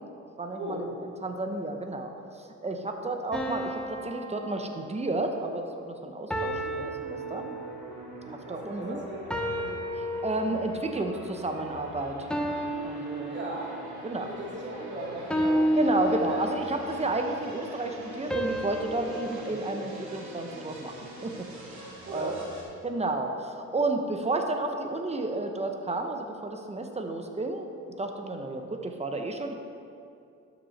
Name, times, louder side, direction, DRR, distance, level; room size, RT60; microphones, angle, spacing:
voice 1, 0.4-7.5 8.5-9.0 10.2-12.2 12.8-13.4 14.0-14.3 15.7-20.9 21.2-22.3 22.8-27.7 28.0-29.5, right 2 dB, 20° right, 4 dB, 0.9 m, -32 dB
sound 1, 3.3-5.2 6.3-8.0 9.3-10.9 12.3-14.0 15.3-16.9 18.3-20.6, equal, 5° left, 1.1 m, -32 dB
sound 2, 6.5-22.6, right 1 dB, 70° right, 2.5 m, -45 dB
voice 2, 8.2-9.7 13.3-13.7 14.2-15.6 16.2-16.4 22.1-22.4, right 1 dB, 40° right, -4 dB, 2.0 m, -37 dB
12.0 x 6.2 x 4.3 m, 2.6 s
cardioid pair, 90°, 30 cm